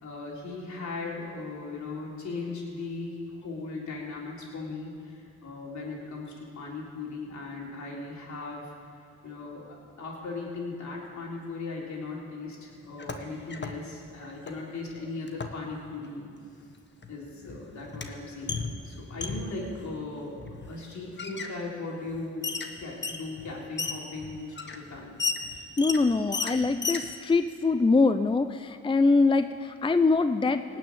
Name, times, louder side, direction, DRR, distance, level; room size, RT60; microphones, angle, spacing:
voice 1, 0.0-8.7 9.2-16.3 17.1-18.6 18.8-22.5 22.8-25.2, left 3 dB, 65° left, -3 dB, 3.8 m, -38 dB
sound 1, 12.8-13.8 14.0-14.6 15.3-15.6 16.7-16.8 17.0-19.7 20.4-20.8 21.2-21.5 22.1-22.2 22.4-27.1, left 4 dB, 35° left, 1.4 m, -34 dB
voice 2, 25.8-30.8, left 3 dB, 15° left, 10 dB, 0.6 m, -23 dB
18.0 x 6.4 x 8.6 m, 2.4 s
supercardioid pair, 55°, 30 cm